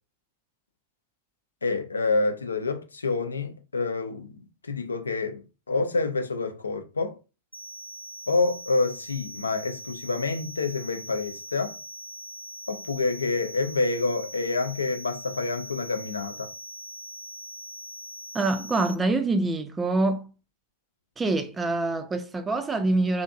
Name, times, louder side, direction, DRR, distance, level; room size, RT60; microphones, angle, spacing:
voice 1, 1.6-7.2 8.3-11.8 12.7-16.5, left 3 dB, 75° left, 0.4 m, -28 dB
sound 1, 7.5-18.9, right 1 dB, 90° right, 0.4 m, -42 dB
voice 2, 18.3-20.3 21.2-23.2, right 2 dB, 15° right, 0.3 m, -25 dB
2.5 x 2.5 x 2.4 m
figure-of-eight pair, 90°, 0 cm